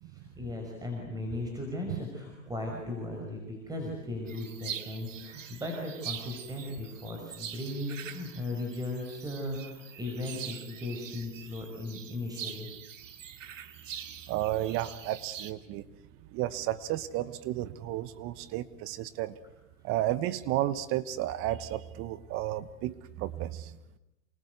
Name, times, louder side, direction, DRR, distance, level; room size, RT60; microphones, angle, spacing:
voice 1, 0.0-12.7, left 2 dB, 10° right, 1 dB, 5.9 m, -37 dB
sound 1, 4.3-15.5, right 9 dB, 75° right, 2.4 m, -44 dB
voice 2, 14.3-15.8 16.3-19.3 19.8-23.8, right 14 dB, 35° right, 15 dB, 1.1 m, -32 dB
28.5 x 24.5 x 8.2 m, 0.96 s
hypercardioid pair, 120°, 38 cm